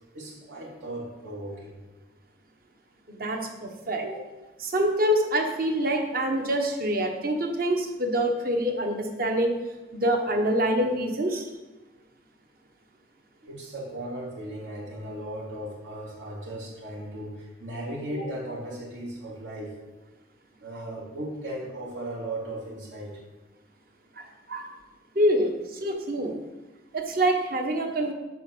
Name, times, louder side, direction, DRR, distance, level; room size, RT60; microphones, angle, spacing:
voice 1, 0.1-1.8 4.0-4.2 13.4-19.7 20.6-23.2, right 1 dB, 85° right, -5 dB, 3.0 m, -36 dB
voice 2, 3.1-4.0 4.6-9.6 9.9-11.4 24.2-24.7 25.1-25.5 25.8-26.4 26.9-28.1, right 1 dB, 50° right, 3 dB, 1.1 m, -26 dB
8.9 x 4.2 x 6.7 m, 1.1 s
head